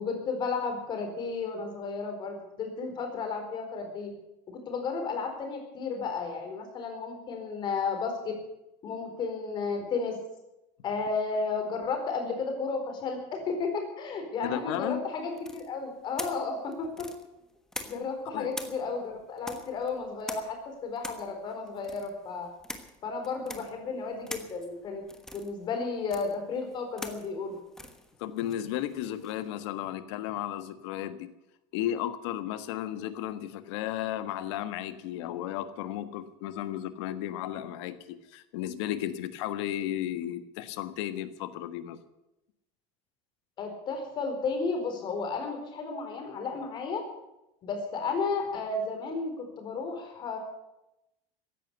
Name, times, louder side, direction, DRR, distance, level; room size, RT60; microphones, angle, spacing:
voice 1, 0.0-4.1 4.5-8.1 8.8-10.2 10.8-16.9 17.9-22.5 23.0-25.0 25.3-27.6 43.6-47.0 47.6-50.4, left 4 dB, 35° left, 4 dB, 4.3 m, -33 dB
voice 2, 14.4-15.0 18.3-18.5 28.2-31.3 31.7-42.0, left 12 dB, 85° left, 11 dB, 1.5 m, -34 dB
sound 1, 15.4-18.2 18.5-29.5, left 1 dB, 5° left, 1.3 m, -44 dB
15.5 x 11.0 x 8.1 m, 0.91 s
cardioid pair, 165°, 14 cm